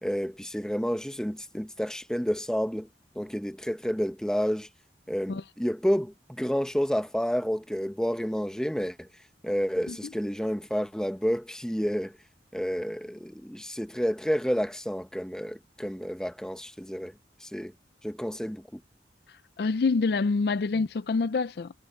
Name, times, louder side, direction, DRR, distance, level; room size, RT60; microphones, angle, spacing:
voice 1, 0.0-2.9 3.1-4.7 5.1-9.1 9.4-12.1 12.5-17.1 17.4-17.7 18.0-18.8, equal, 5° left, 0.9 m, -30 dB
voice 2, 19.3-21.7, left 4 dB, 60° left, 0.4 m, -27 dB
head